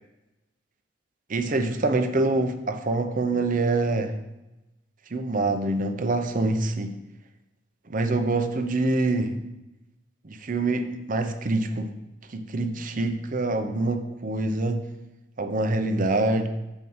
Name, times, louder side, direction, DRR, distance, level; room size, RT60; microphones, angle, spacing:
voice 1, 1.3-4.1 5.1-7.0 7.9-9.4 10.2-11.9 12.3-14.8 15.4-16.5, right 2 dB, 45° right, 7 dB, 0.7 m, -25 dB
7.7 x 4.5 x 5.5 m, 0.99 s
head